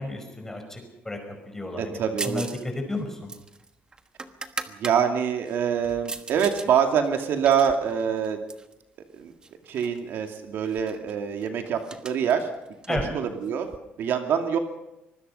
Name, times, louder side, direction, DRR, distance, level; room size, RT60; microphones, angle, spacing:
voice 1, 0.0-3.3 12.9-13.1, left 2 dB, 10° left, 4 dB, 5.2 m, -33 dB
voice 2, 1.8-2.4 4.7-8.4 9.2-9.3 9.7-12.5 12.9-13.7 14.0-14.6, right 7 dB, 65° right, 5 dB, 2.5 m, -25 dB
sound 1, 2.2-2.6 2.9-5.0 5.4-6.7 7.0-8.7 9.4-10.0 10.2-10.3 10.6-13.8, right 3 dB, 20° right, 1.3 m, -38 dB
25.5 x 20.5 x 5.6 m, 0.93 s
cardioid pair, 145°, 4 cm